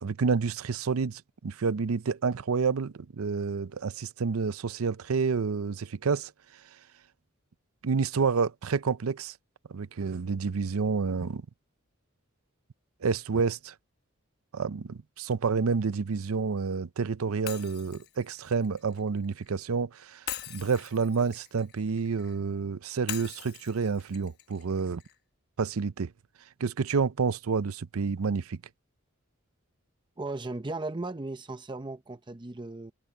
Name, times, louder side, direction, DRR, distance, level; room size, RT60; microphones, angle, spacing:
voice 1, 0.0-6.3 7.8-9.4 9.7-11.4 13.0-13.7 14.5-25.0 25.6-26.1 26.6-28.6, right 5 dB, 90° right, 0.6 m, -29 dB
Shatter, 17.5-19.5 20.3-22.4 23.1-25.2, left 11 dB, 50° left, 1.2 m, -42 dB
voice 2, 30.2-32.9, right 2 dB, 20° right, 0.7 m, -36 dB
head